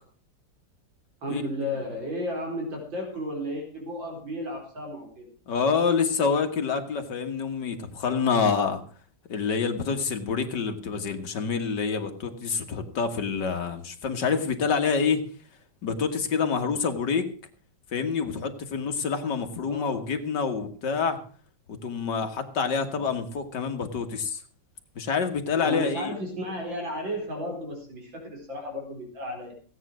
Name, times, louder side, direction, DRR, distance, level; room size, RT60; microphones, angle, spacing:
voice 1, 1.2-5.3 19.7-20.0 25.6-29.5, equal, 85° right, 1 dB, 4.9 m, -33 dB
voice 2, 5.5-8.8 9.3-15.2 15.8-17.3 17.9-21.2 21.7-24.4 25.0-26.1, left 5 dB, 65° left, 7 dB, 2.3 m, -27 dB
17.0 x 9.2 x 6.2 m, 0.43 s
omnidirectional pair, 2.0 m